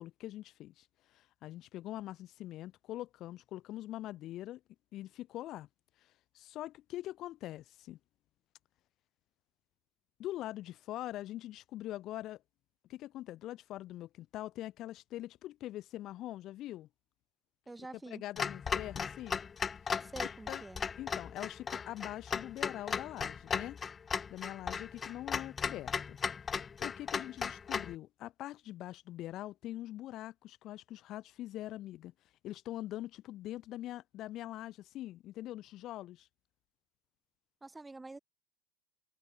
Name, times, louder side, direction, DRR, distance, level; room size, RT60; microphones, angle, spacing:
voice 1, 0.0-4.6 4.9-5.7 6.3-8.0 10.2-12.4 12.9-16.9 18.1-19.4 20.5-20.6 21.0-23.8 24.3-26.2 26.8-32.1 32.4-36.3, left 14 dB, 45° left, 4.5 m, -43 dB
voice 2, 17.7-18.2 20.0-20.8 37.6-38.2, right 2 dB, 10° right, 6.5 m, -47 dB
Clock, 18.4-27.9, left 6 dB, 25° left, 4.8 m, -37 dB
supercardioid pair, 110°, 0 cm